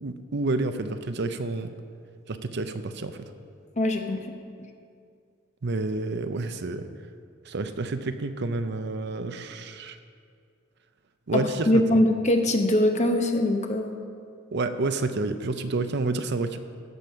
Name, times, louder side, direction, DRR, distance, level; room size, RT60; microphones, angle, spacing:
voice 1, 0.0-1.7 2.3-3.2 5.6-6.9 7.5-10.0 11.3-12.0 14.5-16.6, right 3 dB, 55° right, 9 dB, 0.6 m, -29 dB
voice 2, 3.8-4.3 11.3-14.0, left 1 dB, 35° left, 4 dB, 1.0 m, -23 dB
15.5 x 6.9 x 5.7 m, 2.3 s
head